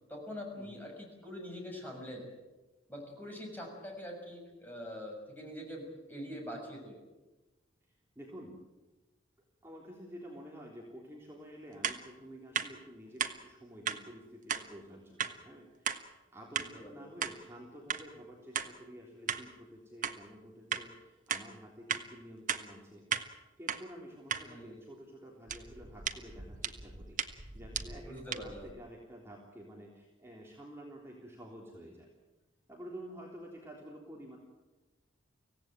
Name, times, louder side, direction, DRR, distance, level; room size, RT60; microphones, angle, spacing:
voice 1, 0.1-2.3 2.9-7.0 16.5-17.1 24.4-24.8 28.0-28.7, equal, 10° left, 0 dB, 6.4 m, -44 dB
voice 2, 7.9-8.6 9.6-23.1 23.6-32.1 32.7-34.4, equal, 15° right, -3 dB, 3.4 m, -50 dB
sound 1, 11.8-12.0 12.5-12.7 13.2-13.3 13.9-14.0 14.5-14.6 15.2-15.3 15.9-16.0 16.6-16.7 17.2-17.4 17.9-18.0 18.5-18.7 19.3-19.4 20.0-20.2 20.7-20.8 21.3-21.4 21.9-22.0 22.5-22.6 23.1-23.3 23.7-23.8 24.3-24.4 25.5-28.7, right 7 dB, 45° right, 1.4 m, -35 dB
25.0 x 17.0 x 9.1 m, 1.1 s
head